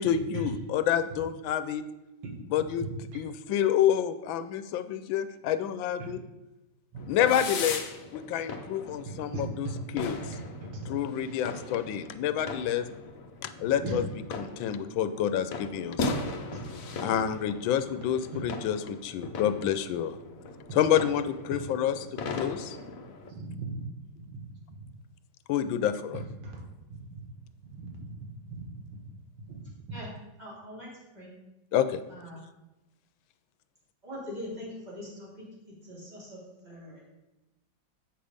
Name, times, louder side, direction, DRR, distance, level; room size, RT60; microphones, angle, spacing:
voice 1, 0.0-1.8 2.5-2.9 3.1-6.2 7.1-7.8 8.1-10.2 10.9-12.9 13.4-14.0 14.4-16.1 17.0-20.2 20.7-22.8 25.5-26.2 31.7-32.0, left 9 dB, 85° left, 12 dB, 1.3 m, -28 dB
sound 1, 7.0-23.3, left 3 dB, 55° left, 1.0 m, -39 dB
voice 2, 23.3-23.7 24.7-24.8 26.4-26.5 26.9-27.2 27.7-28.1 28.6-28.7 29.5-29.6, right 3 dB, 80° right, 1 dB, 2.3 m, -37 dB
voice 3, 30.4-30.9 31.1-31.3 32.1-32.4 34.0-35.4 35.8-37.0, left 1 dB, 20° right, -7 dB, 3.4 m, -42 dB
8.2 x 5.7 x 5.1 m, 0.99 s
omnidirectional pair, 2.1 m